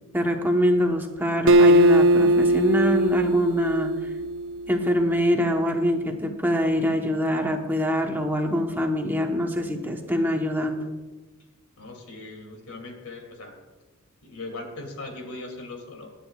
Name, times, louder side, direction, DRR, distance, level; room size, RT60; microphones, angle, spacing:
voice 1, 0.1-4.1 4.7-10.8, equal, 10° right, 2 dB, 1.0 m, -24 dB
Acoustic guitar, 1.5-4.9, right 1 dB, 60° right, 0.7 m, -19 dB
voice 2, 11.8-13.6 14.2-16.1, left 2 dB, 85° left, 2 dB, 2.6 m, -39 dB
24.0 x 9.9 x 2.4 m, 1.2 s
head